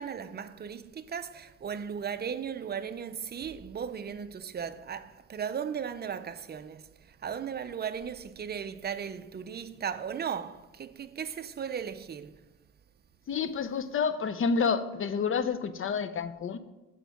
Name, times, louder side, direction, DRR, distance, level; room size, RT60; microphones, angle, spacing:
voice 1, 0.0-12.4, right 7 dB, 35° right, 0.6 m, -36 dB
voice 2, 13.3-16.6, left 5 dB, 45° left, 0.6 m, -29 dB
8.2 x 4.6 x 5.3 m
cardioid pair, 90°, 30 cm